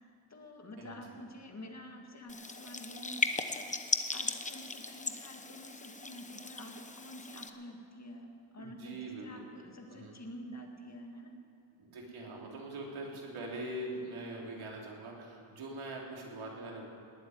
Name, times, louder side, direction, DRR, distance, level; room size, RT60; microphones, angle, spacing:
voice 1, 0.0-11.3, equal, 35° left, 2 dB, 2.0 m, -48 dB
sound 1, 2.3-7.5, left 3 dB, 15° left, 0.8 m, -37 dB
voice 2, 8.6-9.4 9.9-10.1 11.8-16.9, right 1 dB, 80° right, -2 dB, 3.4 m, -42 dB
19.0 x 7.9 x 9.5 m, 2.6 s
cardioid pair, 110°, 49 cm